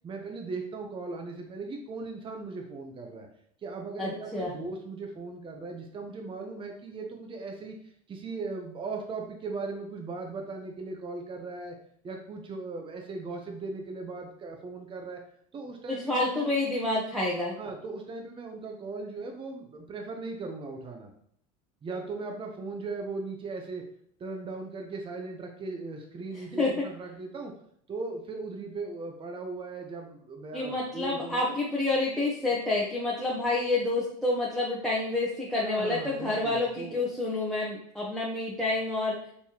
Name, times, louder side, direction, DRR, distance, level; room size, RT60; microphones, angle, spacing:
voice 1, 0.0-3.3 3.6-7.8 8.1-11.7 12.0-15.2 15.5-16.6 17.6-21.1 21.8-23.8 24.2-27.5 27.9-31.5 35.6-37.1, right 3 dB, 25° right, 2 dB, 0.8 m, -38 dB
voice 2, 4.0-4.6 15.9-17.6 26.5-26.8 30.5-39.2, left 2 dB, ahead, -5 dB, 1.0 m, -28 dB
4.1 x 3.5 x 2.9 m, 0.67 s
supercardioid pair, 95°, 19 cm